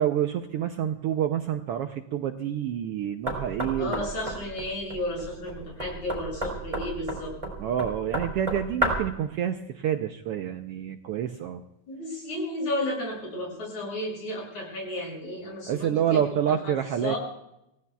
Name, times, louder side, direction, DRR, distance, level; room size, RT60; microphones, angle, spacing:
voice 1, 0.0-4.1 7.6-11.6 15.7-17.2, right 10 dB, 75° right, 6 dB, 1.4 m, -28 dB
Knock, 3.3-9.2, right 1 dB, 10° right, 3.9 m, -32 dB
voice 2, 3.8-7.3 11.9-16.2 16.6-16.7 17.0-17.2, left 1 dB, 75° left, -1 dB, 8.6 m, -33 dB
28.5 x 16.5 x 2.3 m, 0.83 s
omnidirectional pair, 3.3 m